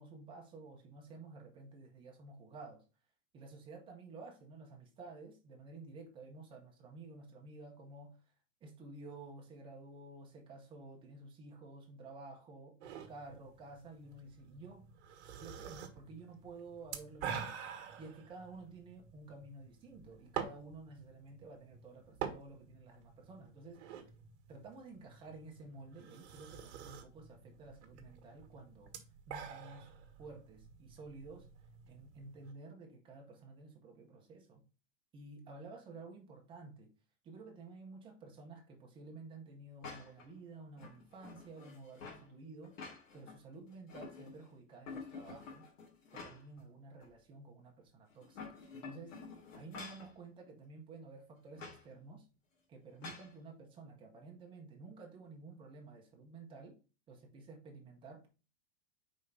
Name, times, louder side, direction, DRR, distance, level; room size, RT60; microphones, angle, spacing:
voice 1, 0.0-2.8 3.3-8.2 8.6-12.8 13.1-14.9 15.3-17.5 18.0-23.8 24.5-28.9 29.3-29.9 30.2-31.5 31.9-34.6 35.1-36.9 37.2-42.8 43.1-45.7 46.1-48.4 48.7-49.1 49.6-52.3 52.7-56.8 57.1-58.3, right 3 dB, 15° right, 1.0 m, -52 dB
sound 1, 12.8-32.5, right 8 dB, 60° right, 1.5 m, -48 dB
sound 2, 39.8-40.3 40.8-42.3 42.6-43.4 43.7-44.5 44.9-46.6 47.0-47.1 48.1-50.1 51.6-51.8 53.0-53.3, left 4 dB, 85° left, 2.6 m, -49 dB
5.1 x 3.6 x 5.5 m
supercardioid pair, 170°, 38 cm